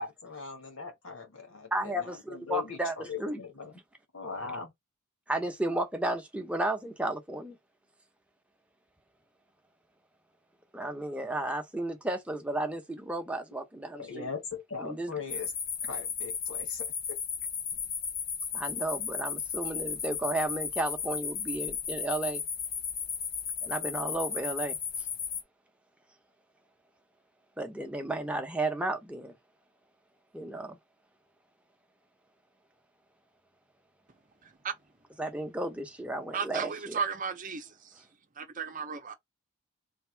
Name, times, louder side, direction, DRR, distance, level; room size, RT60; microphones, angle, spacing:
voice 1, 0.0-3.8 4.1-4.7 13.9-15.5 15.9-17.2, left 5 dB, 75° left, 1.5 m, -40 dB
voice 2, 1.7-3.4 5.3-7.6 10.7-14.3 14.8-15.1 18.5-22.4 23.6-24.8 27.6-29.3 30.3-30.8 35.2-37.0, right 1 dB, 5° right, 0.7 m, -33 dB
sound 1, 15.3-25.4, left 7 dB, 45° left, 0.7 m, -35 dB
voice 3, 34.4-34.7 36.3-37.9 38.4-39.1, right 6 dB, 40° right, 0.7 m, -35 dB
3.5 x 2.6 x 4.5 m
head